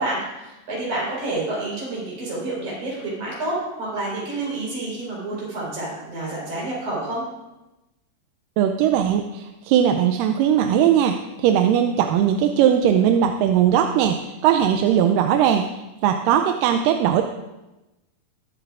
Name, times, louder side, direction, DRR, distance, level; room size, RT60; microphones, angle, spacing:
voice 1, 0.0-7.2, right 2 dB, 65° right, -6 dB, 5.8 m, -29 dB
voice 2, 8.6-17.2, right 9 dB, 90° right, 6 dB, 2.3 m, -19 dB
20.5 x 7.9 x 2.5 m, 1.0 s
omnidirectional pair, 3.8 m